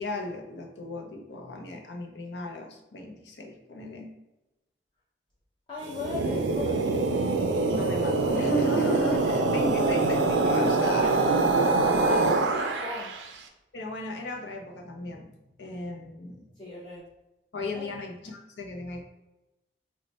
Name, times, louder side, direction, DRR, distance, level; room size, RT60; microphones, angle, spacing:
voice 1, 0.0-4.1 7.8-11.7 12.1-12.3 13.7-15.3 15.6-16.4 17.5-19.0, equal, 70° left, 2 dB, 0.6 m, -35 dB
voice 2, 5.7-7.1 12.0-13.1 16.6-17.0 17.7-17.8, left 3 dB, 30° left, -9 dB, 0.8 m, -38 dB
sound 1, 5.8-13.2, right 3 dB, 85° right, 0.4 m, -24 dB
3.1 x 2.1 x 4.1 m, 0.98 s
head